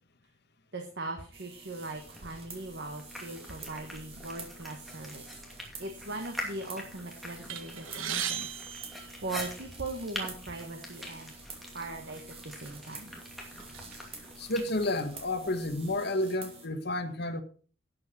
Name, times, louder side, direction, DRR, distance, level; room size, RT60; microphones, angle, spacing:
voice 1, 0.7-5.3 5.8-8.6 9.1-11.3 11.7-13.1, right 2 dB, 55° right, 1.5 m, -40 dB
sound 1, 1.3-16.7, right 4 dB, 30° right, 2.4 m, -49 dB
sound 2, 1.9-15.9, equal, ahead, 2.5 m, -45 dB
sound 3, 7.5-9.8 10.7-10.8 11.1-11.3 12.1-12.3 12.8-14.0, right 9 dB, 80° right, 1.3 m, -37 dB
voice 2, 14.4-17.4, left 1 dB, 50° left, 1.3 m, -31 dB
12.0 x 8.8 x 4.3 m
head